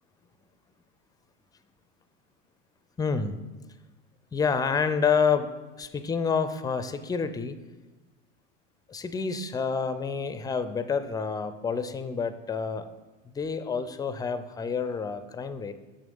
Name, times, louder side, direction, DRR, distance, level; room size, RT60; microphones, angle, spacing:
voice 1, 3.0-3.4 4.3-5.5 5.8-7.6 8.9-12.9 13.3-15.7, left 5 dB, 10° left, 11 dB, 0.4 m, -28 dB
6.4 x 6.2 x 5.3 m, 1.2 s
hypercardioid pair, 90°, 38 cm